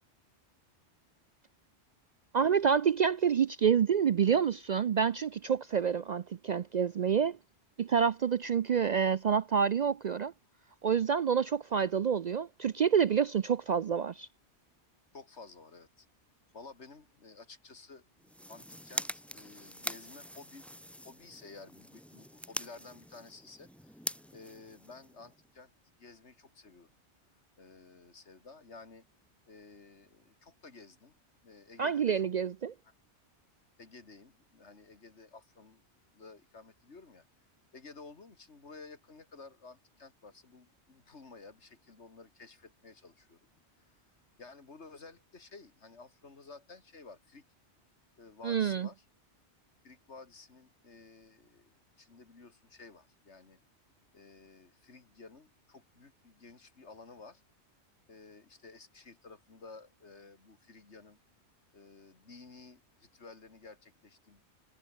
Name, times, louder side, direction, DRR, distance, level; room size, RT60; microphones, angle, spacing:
voice 1, 2.3-7.4 7.8-10.3 10.8-14.3 31.8-32.7 48.4-48.9, right 7 dB, 55° right, 0.5 m, -28 dB
voice 2, 15.1-16.1 16.5-18.1 18.5-20.7 21.0-24.0 24.3-25.7 26.0-27.0 27.6-29.1 29.5-31.1 31.4-32.2 32.8-32.9 33.8-35.8 36.1-37.2 37.7-43.5 43.8-44.0 44.4-47.4 48.2-49.0 49.8-53.6 54.1-57.4 58.1-61.2 61.7-64.4, left 4 dB, 80° left, 2.8 m, -53 dB
sound 1, 18.2-25.5, equal, ahead, 2.1 m, -43 dB
omnidirectional pair, 1.2 m